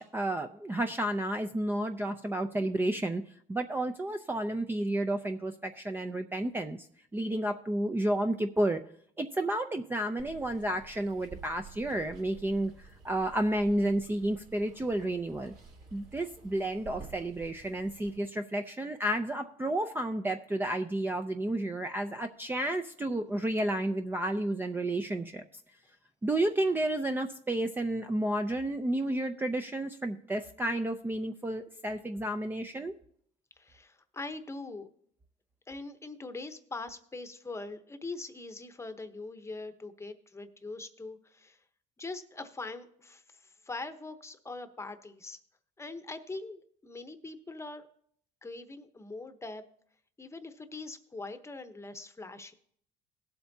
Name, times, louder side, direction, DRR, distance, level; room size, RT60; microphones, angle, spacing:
voice 1, 0.0-3.2 3.5-6.8 7.1-8.8 9.2-15.5 15.9-25.4 26.2-32.9, right 1 dB, 10° right, 5 dB, 0.5 m, -31 dB
Water, 10.2-18.2, right 5 dB, 65° right, 2.8 m, -51 dB
voice 2, 33.6-34.9 35.7-41.6 42.0-45.4 45.8-47.9 48.4-49.6 50.2-52.5, left 3 dB, 15° left, 9 dB, 0.9 m, -42 dB
18.0 x 7.9 x 2.7 m, 0.65 s
cardioid pair, 110°, 17 cm